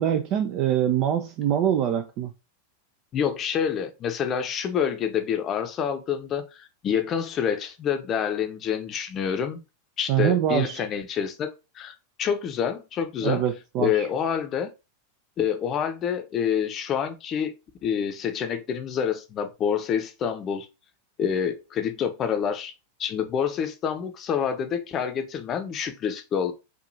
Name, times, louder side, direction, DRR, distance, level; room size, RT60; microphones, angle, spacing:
voice 1, 0.0-2.3 10.1-10.8 13.2-14.1, right 10 dB, 40° right, 0.4 m, -24 dB
voice 2, 3.1-9.6 10.0-13.4 13.8-14.7 15.4-17.5 17.8-20.7 21.2-22.7 23.0-26.5, left 8 dB, 30° left, 0.7 m, -27 dB
4.7 x 2.5 x 2.7 m
figure-of-eight pair, 90°, 0 cm